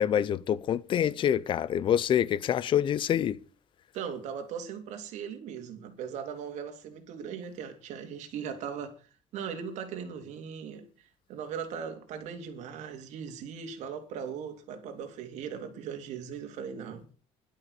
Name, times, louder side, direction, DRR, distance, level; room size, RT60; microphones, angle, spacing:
voice 1, 0.0-3.4, left 10 dB, 45° left, 0.7 m, -26 dB
voice 2, 3.9-9.1 9.3-17.0, right 7 dB, 75° right, 3.0 m, -39 dB
13.0 x 12.0 x 6.6 m
cardioid pair, 150°, 12 cm